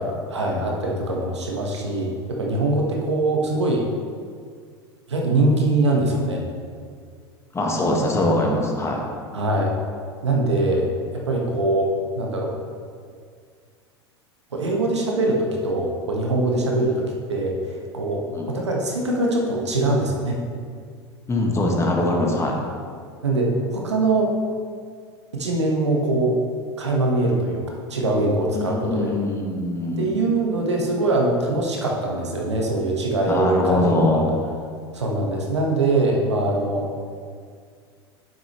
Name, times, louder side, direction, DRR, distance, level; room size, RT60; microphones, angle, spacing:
voice 1, 0.0-3.8 5.1-6.4 9.3-9.7 10.2-12.5 14.5-20.4 23.2-24.3 25.3-26.4 26.8-27.6 27.9-29.1 30.0-34.2 34.9-36.9, right 2 dB, 85° right, 0 dB, 1.3 m, -22 dB
voice 2, 7.5-9.0 18.3-18.5 21.3-22.5 28.5-30.4 33.3-34.3, left 1 dB, 20° left, 0 dB, 1.5 m, -22 dB
9.2 x 7.6 x 3.1 m, 2.1 s
hypercardioid pair, 85°, 14 cm